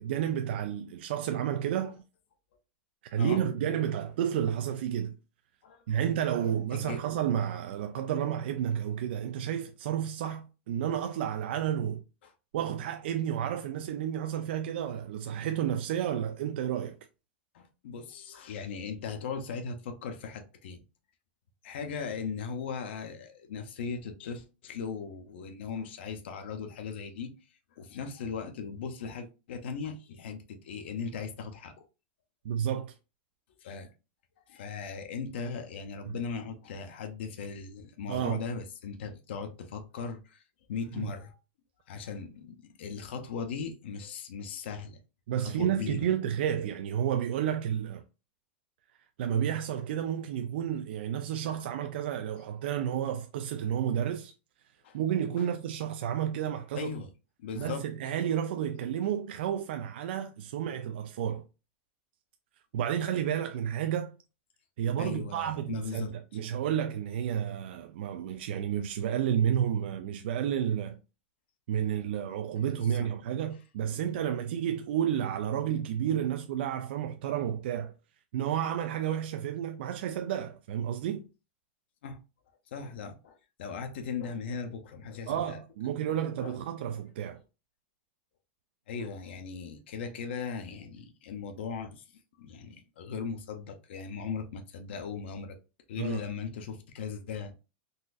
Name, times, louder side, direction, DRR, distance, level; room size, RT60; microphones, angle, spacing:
voice 1, 0.0-2.0 3.1-5.2 5.9-12.0 12.5-17.0 32.4-32.9 36.1-36.2 38.1-38.4 41.0-41.1 45.3-48.0 49.2-54.3 54.9-56.9 57.6-61.4 62.7-64.1 64.8-71.0 71.7-77.9 78.3-81.2 85.3-87.4 96.0-96.2, right 9 dB, 70° right, 0.3 m, -31 dB
voice 2, 5.6-6.0 6.7-7.0 12.2-12.3 17.5-20.8 21.6-31.7 33.6-33.9 34.5-40.4 40.7-41.4 41.9-45.0 45.4-46.1 54.8-55.0 55.4-55.5 56.7-57.1 57.4-57.9 65.0-66.2 72.9-73.1 73.9-74.0 82.0-82.2 82.7-85.6 86.1-86.6 88.9-92.1 92.4-95.6 95.9-97.6, left 5 dB, 80° left, 0.6 m, -38 dB
3.9 x 2.5 x 2.4 m
supercardioid pair, 160°, 6 cm